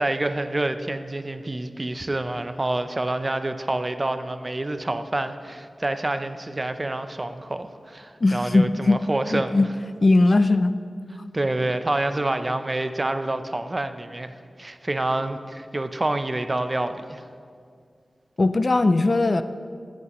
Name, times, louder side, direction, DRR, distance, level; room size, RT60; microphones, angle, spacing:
voice 1, 0.0-9.7 11.3-17.2, right 2 dB, 35° right, 9 dB, 0.6 m, -27 dB
voice 2, 8.2-9.0 9.3-9.7 10.0-10.8 18.4-19.4, left 2 dB, 50° left, 12 dB, 0.4 m, -19 dB
15.5 x 8.2 x 3.1 m, 2.2 s
cardioid pair, 50°, 0 cm